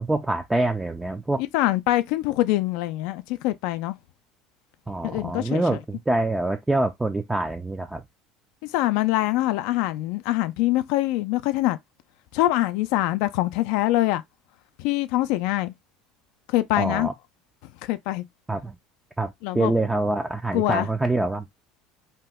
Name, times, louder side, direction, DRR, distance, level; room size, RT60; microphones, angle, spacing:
voice 1, 0.0-1.4 4.9-8.0 16.8-17.1 18.5-18.7 19.2-21.4, right 2 dB, 10° right, 0.4 m, -25 dB
voice 2, 1.4-4.0 5.0-5.8 8.7-11.8 12.3-14.2 14.8-15.7 16.5-17.1 17.8-18.2 19.4-19.7 20.5-20.9, left 16 dB, 75° left, 0.3 m, -24 dB
2.8 x 2.2 x 3.4 m
supercardioid pair, 100°, 0 cm